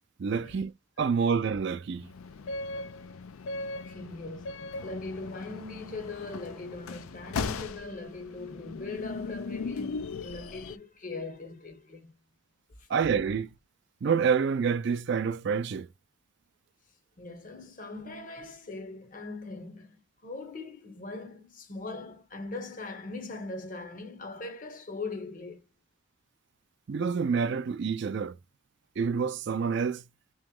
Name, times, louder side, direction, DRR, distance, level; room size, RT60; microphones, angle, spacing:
voice 1, 0.2-0.7 1.0-2.1 12.9-13.5 14.0-15.9 26.9-28.4 29.0-30.0, right 6 dB, 55° right, 0.4 m, -27 dB
sound 1, 1.9-10.8, left 4 dB, 85° left, 0.4 m, -38 dB
voice 2, 3.8-12.1 12.8-12.9 17.2-25.6, left 3 dB, 40° left, 0.7 m, -40 dB
3.0 x 2.9 x 3.6 m
head